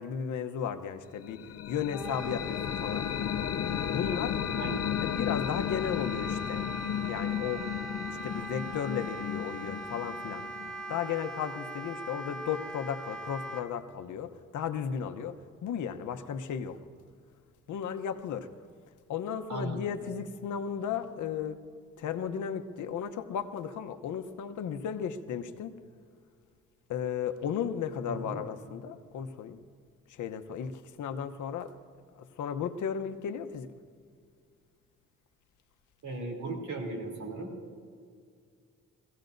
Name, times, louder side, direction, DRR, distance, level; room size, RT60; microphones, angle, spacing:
voice 1, 0.0-1.4 1.7-3.3 3.9-4.4 5.0-6.7 7.0-10.4 10.9-16.8 17.7-18.5 19.1-21.6 22.0-25.8 26.9-29.6 30.1-31.7 32.1-33.7, left 8 dB, 85° left, 8 dB, 0.9 m, -35 dB
sound 1, 1.2-11.0, left 10 dB, 55° left, 0.5 m, -34 dB
Wind instrument woodwind instrument, 1.9-13.6, right 2 dB, ahead, 1.2 m, -41 dB
voice 2, 19.5-19.9 28.1-28.4 36.0-37.6, right 2 dB, 80° right, 1 dB, 3.2 m, -37 dB
23.5 x 16.0 x 2.6 m, 2.1 s
cardioid pair, 90°, 29 cm